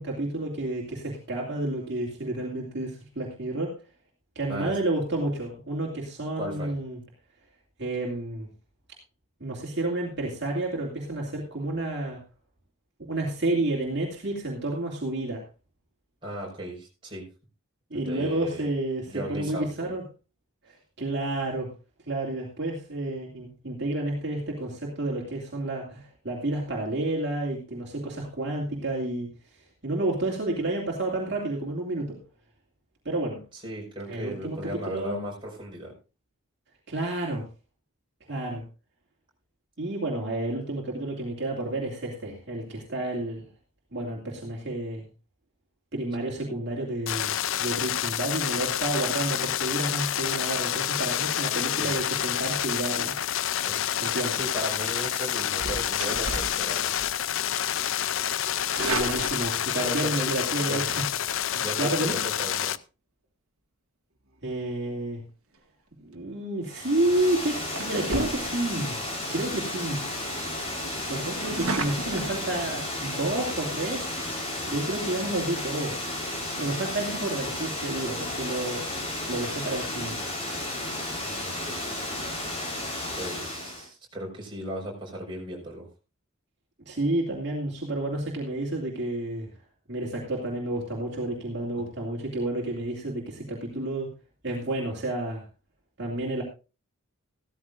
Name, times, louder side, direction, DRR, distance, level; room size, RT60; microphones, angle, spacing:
voice 1, 0.0-3.7 4.4-7.0 7.8-8.5 9.4-12.2 13.0-15.4 17.9-20.0 20.6-21.7 22.0-29.3 29.8-32.2 33.0-33.4 34.1-35.2 36.9-37.4 38.3-38.6 39.8-43.5 43.9-45.1 45.9-53.2 54.0-54.4 58.9-61.1 61.5-62.2 64.4-65.2 66.0-69.0 69.3-70.0 71.1-74.1 74.6-76.0 76.6-78.8 79.3-80.2 86.9-89.5 89.9-94.1 94.4-95.4 96.0-96.4, right 2 dB, 50° right, -2 dB, 2.5 m, -30 dB
voice 2, 6.4-6.7 16.2-17.2 17.9-18.7 19.1-19.9 33.5-35.9 51.8-51.9 53.6-53.7 54.3-56.9 59.8-60.3 60.7-60.8 61.6-62.7 81.2-81.8 83.2-85.9, equal, 20° right, -2 dB, 5.1 m, -36 dB
sound 1, 47.1-62.8, left 11 dB, 65° left, 0.5 m, -28 dB
sound 2, 55.5-57.2 57.6-57.8 58.4-59.9 61.2-61.4 66.4-66.7 67.2-67.3 67.7-68.8 69.3-69.4 69.7-69.8 70.1-70.2 70.6-72.3, right 2 dB, 75° right, 1.6 m, -34 dB
Water, 66.7-83.9, left 1 dB, 25° left, 4.1 m, -33 dB
15.5 x 13.5 x 2.5 m, 0.31 s
head